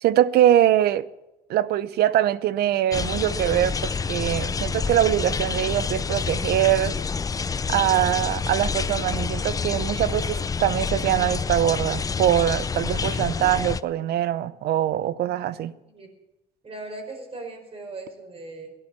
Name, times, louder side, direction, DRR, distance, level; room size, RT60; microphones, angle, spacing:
voice 1, 0.0-1.0 1.5-6.9 7.7-15.7, right 12 dB, 70° right, 0.7 m, -23 dB
sound 1, 2.9-13.8, left 5 dB, 20° left, 0.4 m, -28 dB
voice 2, 16.6-18.7, right 2 dB, 35° right, 4.9 m, -38 dB
17.5 x 11.0 x 7.2 m
cardioid pair, 110°, 17 cm